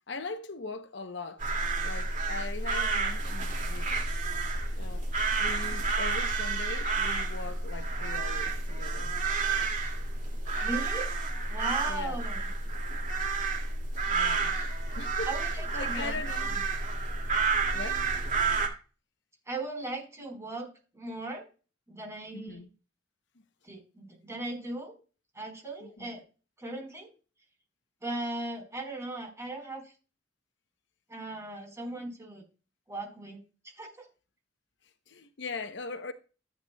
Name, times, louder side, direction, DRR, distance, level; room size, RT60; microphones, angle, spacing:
voice 1, 0.1-1.6 1.8-4.2 4.8-5.1 5.4-9.1 11.9-12.2 14.1-14.5 15.0-16.6 17.7-18.1 22.3-22.7 25.8-26.1 35.1-36.1, left 3 dB, 65° left, 0.8 m, -40 dB
sound 1, 1.4-18.7, right 4 dB, 40° right, 2.3 m, -30 dB
voice 2, 10.6-11.1 11.5-12.5 15.3-16.2 16.4-16.6 19.5-21.4 21.9-22.6 23.6-24.9 25.3-26.2 26.6-27.1 28.0-29.9 31.1-32.4 32.9-33.4 33.7-34.1, right 2 dB, 15° right, 4.4 m, -38 dB
14.0 x 9.2 x 2.3 m
head